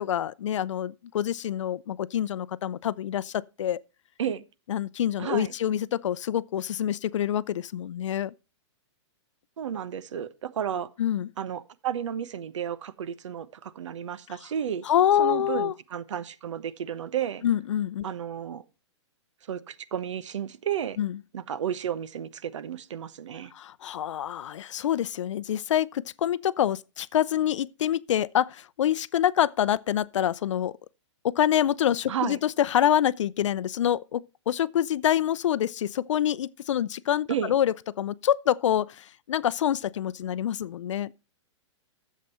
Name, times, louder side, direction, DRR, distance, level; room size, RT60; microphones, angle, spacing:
voice 1, 0.0-3.8 4.7-8.3 11.0-11.3 14.8-15.7 17.4-18.1 21.0-21.2 23.5-30.7 31.2-41.1, left 10 dB, 80° left, 0.5 m, -26 dB
voice 2, 5.2-5.5 9.6-10.9 11.4-14.8 15.2-17.4 18.0-18.6 19.5-21.0 21.3-23.5 32.1-32.4 37.3-37.5, right 9 dB, 75° right, 0.9 m, -32 dB
11.0 x 7.5 x 4.2 m
hypercardioid pair, 175°, 16 cm